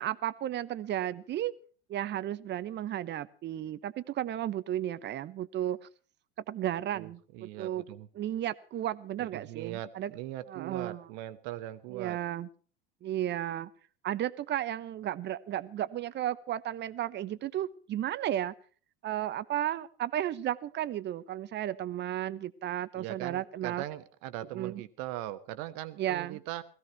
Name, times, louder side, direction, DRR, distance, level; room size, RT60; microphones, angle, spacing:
voice 1, 0.0-1.5 1.9-5.9 6.5-7.8 8.1-10.1 10.5-11.1 11.9-12.5 13.0-13.7 14.0-18.5 19.0-23.8 24.5-24.8 26.0-26.4, right 12 dB, 35° right, 17 dB, 0.9 m, -34 dB
voice 2, 6.9-8.1 9.2-12.2 22.9-26.6, right 14 dB, 55° right, 12 dB, 1.3 m, -40 dB
17.5 x 15.5 x 4.6 m, 0.42 s
hypercardioid pair, 80°, 29 cm